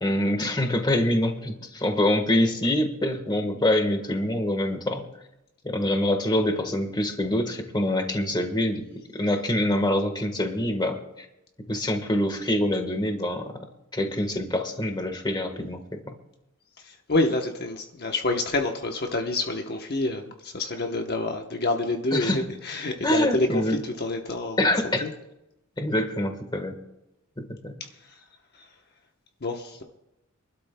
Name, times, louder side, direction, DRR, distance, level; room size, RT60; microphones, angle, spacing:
voice 1, 0.0-5.1 5.6-8.8 9.1-11.0 11.7-13.5 13.9-16.1 22.1-22.4 23.0-23.8 24.6-25.0 25.8-26.7 27.4-27.7, left 1 dB, 20° left, 6 dB, 1.4 m, -25 dB
voice 2, 16.8-24.7 25.0-25.1 28.5-28.7 29.4-29.8, left 2 dB, 50° left, 3 dB, 1.0 m, -28 dB
26.5 x 12.5 x 2.3 m, 0.91 s
head